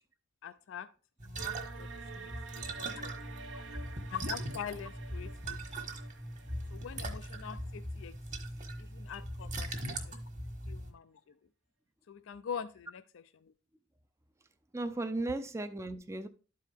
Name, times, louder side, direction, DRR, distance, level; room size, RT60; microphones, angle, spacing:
voice 1, 0.4-0.9 1.2-3.6 4.1-5.9 6.7-8.5 8.8-10.2 10.7-11.3 12.1-13.5, left 7 dB, 80° left, 0.4 m, -45 dB
sound 1, 1.2-10.9, right 1 dB, 40° right, 1.4 m, -40 dB
sound 2, 1.4-8.3, right 4 dB, 75° right, 0.9 m, -50 dB
voice 2, 14.7-16.3, right 2 dB, 15° right, 0.4 m, -36 dB
12.0 x 4.6 x 3.5 m
head